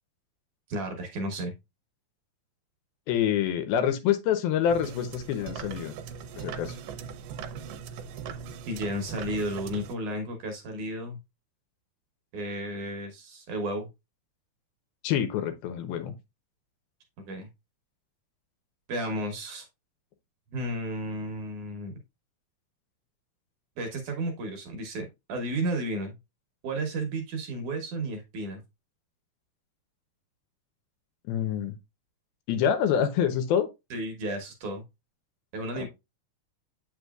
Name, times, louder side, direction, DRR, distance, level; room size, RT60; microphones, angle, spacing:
voice 1, 0.7-1.5 8.6-11.2 12.3-13.9 17.3-17.5 18.9-19.7 20.5-22.0 23.8-26.2 26.6-28.6 33.9-34.8 35.5-35.9, right 1 dB, 65° right, 2.2 m, -33 dB
voice 2, 3.1-6.0 6.4-6.8 15.0-16.1 31.3-31.8 32.5-33.7 35.8-35.9, left 9 dB, 80° left, 2.6 m, -26 dB
sound 1, 4.7-10.0, right 7 dB, 85° right, 2.6 m, -40 dB
7.8 x 5.9 x 2.4 m
omnidirectional pair, 4.4 m